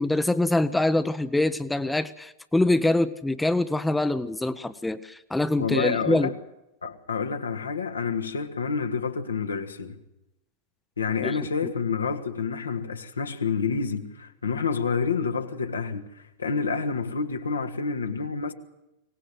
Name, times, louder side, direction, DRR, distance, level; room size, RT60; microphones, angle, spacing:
voice 1, 0.0-6.3 11.2-11.4 11.6-11.7, left 2 dB, 5° left, 1.0 m, -24 dB
voice 2, 5.6-6.3 6.8-10.0 11.0-18.5, left 5 dB, 75° left, 2.0 m, -28 dB
24.0 x 19.0 x 7.8 m
figure-of-eight pair, 90°, 0 cm